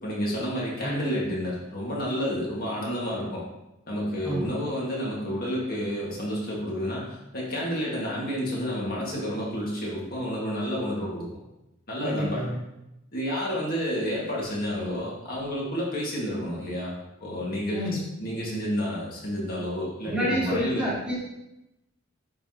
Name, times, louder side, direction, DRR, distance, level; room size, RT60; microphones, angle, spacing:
voice 1, 0.0-3.4 3.9-11.4 11.9-12.4 13.1-16.9 17.2-17.8 18.2-20.9, equal, 45° left, -5 dB, 1.9 m, -30 dB
voice 2, 12.0-12.6 17.7-18.0 20.0-21.2, equal, 5° right, -7 dB, 1.5 m, -28 dB
10.0 x 4.1 x 2.9 m, 0.92 s
head